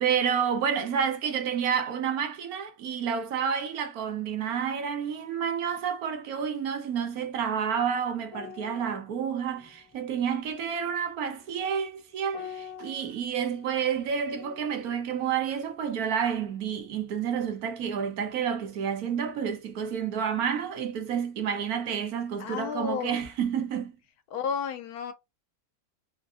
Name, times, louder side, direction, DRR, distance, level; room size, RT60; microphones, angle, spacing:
voice 1, 0.0-23.9, right 7 dB, 75° right, 1.3 m, -29 dB
sound 1, 8.3-17.0 17.3-17.5, left 7 dB, 25° left, 0.5 m, -48 dB
voice 2, 22.4-23.2 24.3-25.1, left 7 dB, 85° left, 1.3 m, -32 dB
4.6 x 2.5 x 2.4 m
omnidirectional pair, 1.6 m